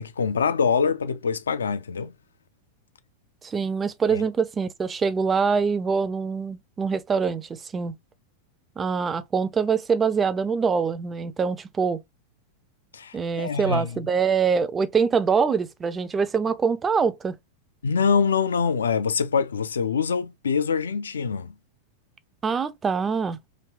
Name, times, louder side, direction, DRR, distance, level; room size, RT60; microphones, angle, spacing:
voice 1, 0.0-2.1 4.1-4.2 12.9-14.0 17.8-21.5, left 6 dB, 70° left, 0.3 m, -24 dB
voice 2, 3.4-7.9 8.8-12.0 13.1-17.4 22.4-23.4, right 5 dB, 20° right, 0.3 m, -24 dB
3.2 x 2.8 x 2.2 m
figure-of-eight pair, 90°, 0 cm